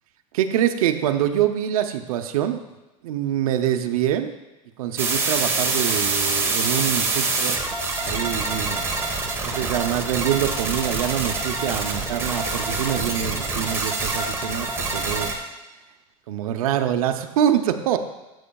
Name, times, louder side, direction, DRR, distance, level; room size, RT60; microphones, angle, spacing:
voice 1, 0.3-2.6 3.0-4.3 4.8-7.6 8.0-8.8 9.4-15.3 16.3-18.0, right 10 dB, 90° right, 6 dB, 0.7 m, -25 dB
sound 1, 5.0-15.3, right 3 dB, 15° right, 1.3 m, -25 dB
12.5 x 7.9 x 2.3 m, 1.0 s
supercardioid pair, 130°, 18 cm